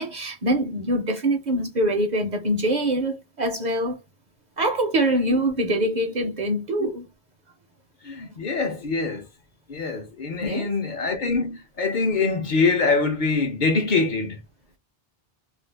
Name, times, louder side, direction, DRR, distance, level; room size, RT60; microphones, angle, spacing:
voice 1, 0.0-4.0 4.6-7.1 10.4-10.7, right 1 dB, 55° right, 0.6 m, -24 dB
voice 2, 8.0-9.2 9.7-14.4, left 4 dB, 55° left, 0.6 m, -24 dB
2.5 x 2.2 x 3.2 m
omnidirectional pair, 1.1 m